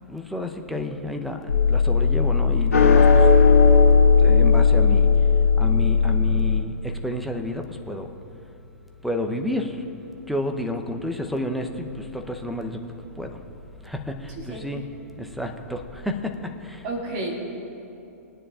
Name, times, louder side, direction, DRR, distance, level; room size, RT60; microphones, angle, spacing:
voice 1, 0.1-3.3 4.2-5.1 5.6-8.1 9.0-9.8 10.3-12.8 13.2-13.4 13.8-14.9 15.2-16.3 16.6-16.8, left 1 dB, ahead, 4 dB, 0.8 m, -30 dB
sound 1, 1.5-6.6, left 5 dB, 85° left, 2.1 m, -16 dB
voice 2, 14.3-14.6 16.8-17.5, right 2 dB, 45° right, -2 dB, 2.3 m, -31 dB
20.5 x 9.8 x 2.5 m, 2.8 s
hypercardioid pair, 115°, 8 cm